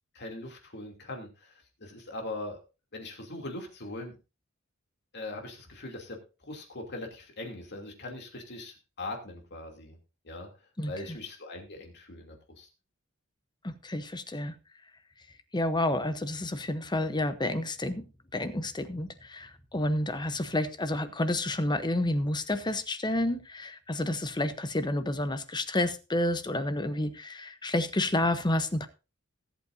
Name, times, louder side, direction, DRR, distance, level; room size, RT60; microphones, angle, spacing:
voice 1, 0.1-2.6 2.9-4.1 5.1-6.2 6.5-10.0 10.2-10.5 10.9-12.7, left 2 dB, 55° left, 2.9 m, -41 dB
voice 2, 10.8-11.2 13.6-14.5 15.5-18.0 18.3-28.9, left 1 dB, 20° left, 0.9 m, -30 dB
19.0 x 8.4 x 2.7 m
head